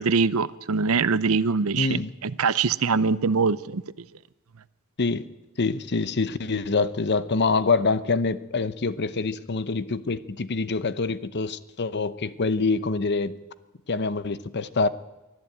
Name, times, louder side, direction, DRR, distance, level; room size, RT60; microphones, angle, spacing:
voice 1, 0.0-3.8, right 5 dB, 70° right, 17 dB, 0.7 m, -23 dB
voice 2, 1.8-2.1 5.0-5.3 5.6-13.4 13.9-14.9, left 4 dB, 50° left, 14 dB, 0.8 m, -25 dB
23.0 x 13.5 x 8.8 m, 1.0 s
head